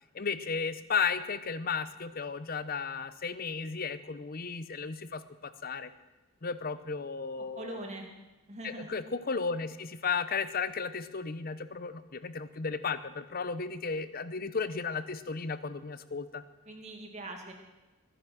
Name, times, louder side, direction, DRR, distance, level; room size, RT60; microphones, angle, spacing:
voice 1, 0.1-5.9 6.4-7.9 8.6-16.4, left 5 dB, 45° left, 13 dB, 0.7 m, -34 dB
voice 2, 7.5-8.2 8.5-8.9 16.7-17.5, right 2 dB, 35° right, 2 dB, 2.3 m, -42 dB
22.0 x 10.5 x 6.1 m, 1.1 s
head